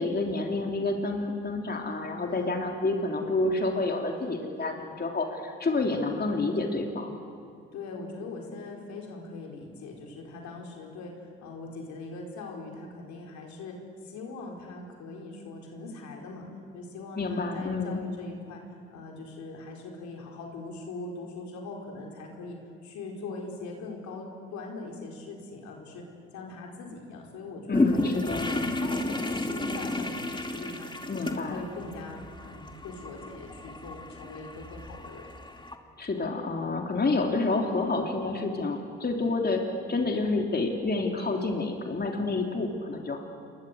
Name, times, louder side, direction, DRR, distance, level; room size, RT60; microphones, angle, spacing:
voice 1, 0.0-7.1 17.2-18.0 27.7-28.5 31.1-31.6 36.0-39.6 39.9-43.2, left 3 dB, 35° left, 2 dB, 3.4 m, -29 dB
voice 2, 2.2-2.6 7.7-18.6 18.9-26.1 26.3-30.9 31.2-35.3 42.4-42.7, left 3 dB, 70° left, 1 dB, 4.6 m, -41 dB
sound 1, 27.7-35.8, left 2 dB, 15° left, 2.8 m, -32 dB
28.5 x 22.0 x 8.1 m, 2.3 s
hypercardioid pair, 50°, 30 cm